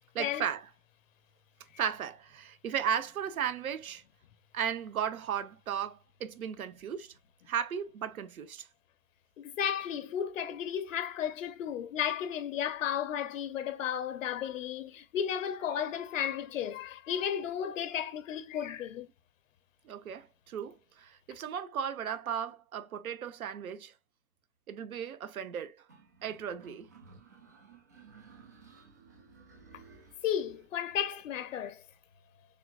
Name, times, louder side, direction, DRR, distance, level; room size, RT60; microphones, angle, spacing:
voice 1, 0.1-0.6 1.8-4.0 4.5-7.1 7.5-8.7 19.8-23.9 24.7-25.8 26.2-26.9, right 8 dB, 75° right, 1.1 m, -35 dB
voice 2, 9.4-19.1 29.7-29.8 30.2-31.8, left 9 dB, 60° left, 0.8 m, -34 dB
sound 1, 25.9-30.7, right 4 dB, 15° right, 0.3 m, -56 dB
6.6 x 2.5 x 2.4 m
hypercardioid pair, 140°, 42 cm